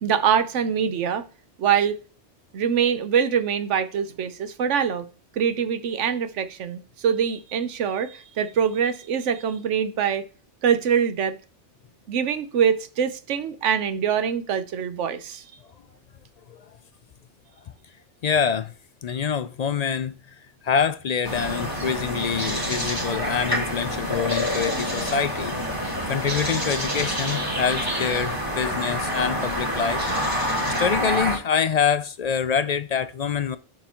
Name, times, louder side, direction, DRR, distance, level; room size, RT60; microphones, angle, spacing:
voice 1, 0.0-1.2 1.6-1.9 2.5-5.1 5.4-10.2 10.6-11.3 12.1-15.4, right 7 dB, 90° right, 1.1 m, -24 dB
voice 2, 18.2-18.7 19.0-20.1 20.6-25.5 26.1-30.1 30.8-33.6, left 7 dB, 60° left, 0.4 m, -25 dB
sound 1, 21.2-31.4, equal, 20° right, 2.2 m, -27 dB
6.8 x 5.4 x 4.3 m
omnidirectional pair, 1.2 m